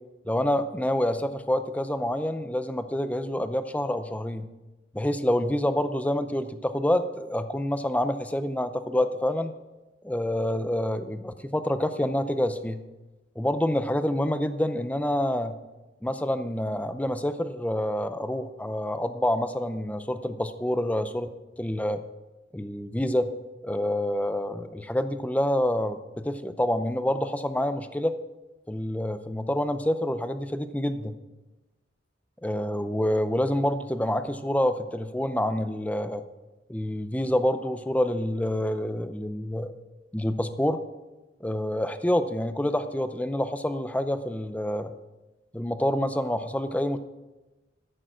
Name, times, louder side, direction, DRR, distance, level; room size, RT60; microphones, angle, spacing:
voice 1, 0.2-4.5 4.9-9.5 10.0-12.8 13.4-15.5 16.0-21.3 21.6-22.0 22.5-23.3 23.6-28.1 28.7-31.2 32.4-36.2 36.7-39.7 40.1-40.8 41.4-44.9 45.5-47.0, left 1 dB, 10° left, 10 dB, 0.5 m, -27 dB
13.5 x 6.6 x 6.2 m, 1.1 s
head